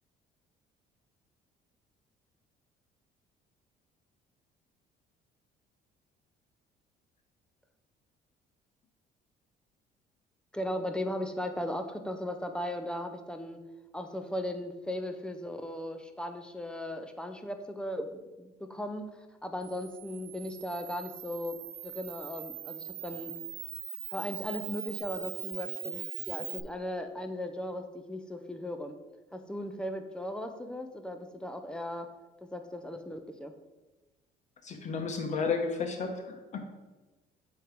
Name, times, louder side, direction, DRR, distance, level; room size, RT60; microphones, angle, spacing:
voice 1, 10.5-13.6 13.9-19.1 19.4-21.6 21.8-23.3 24.1-28.9 29.3-32.1 32.4-33.5, left 1 dB, 5° left, 6 dB, 0.6 m, -37 dB
Camera, 19.6-26.6, right 12 dB, 85° right, 0.7 m, -41 dB
voice 2, 34.6-36.6, left 5 dB, 45° left, 4 dB, 1.1 m, -32 dB
7.8 x 3.2 x 5.1 m, 1.2 s
cardioid pair, 110°, 17 cm